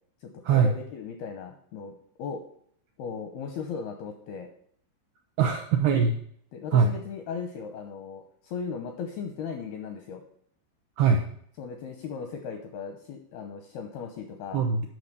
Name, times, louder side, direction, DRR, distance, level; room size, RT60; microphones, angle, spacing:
voice 1, 0.2-2.4 3.0-4.5 6.5-10.2 11.6-14.6, left 6 dB, 80° left, 5 dB, 2.3 m, -37 dB
voice 2, 5.4-6.2 6.7-6.9 11.0-11.2 14.5-14.9, right 5 dB, 85° right, 4 dB, 2.3 m, -22 dB
9.5 x 5.7 x 6.7 m, 0.62 s
omnidirectional pair, 5.5 m